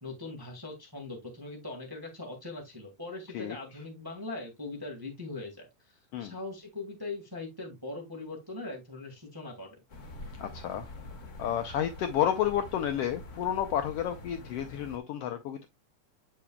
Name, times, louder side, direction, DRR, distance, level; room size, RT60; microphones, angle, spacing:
voice 1, 0.0-9.8, left 2 dB, 10° right, 1.1 m, -41 dB
sound 1, 9.9-15.0, left 1 dB, 50° left, 0.9 m, -45 dB
voice 2, 10.4-10.9 11.4-15.7, left 10 dB, 80° left, 1.4 m, -31 dB
8.6 x 6.0 x 2.2 m
omnidirectional pair, 3.3 m